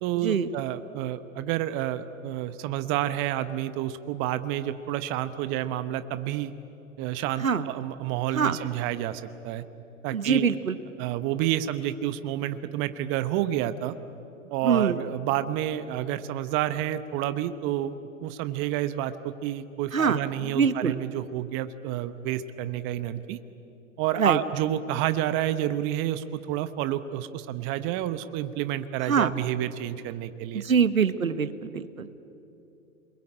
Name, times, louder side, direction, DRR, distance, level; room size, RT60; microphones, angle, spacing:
voice 1, 0.0-6.5 7.0-9.6 10.0-10.5 11.0-13.9 14.5-17.9 18.2-23.4 24.0-30.6, right 12 dB, 30° right, 12 dB, 0.9 m, -29 dB
voice 2, 10.1-10.8 14.6-15.0 19.9-20.9 24.2-24.4 29.1-29.3 30.5-32.3, right 6 dB, 85° right, 12 dB, 1.2 m, -24 dB
28.0 x 22.0 x 8.8 m, 2.9 s
hypercardioid pair, 115°, 40 cm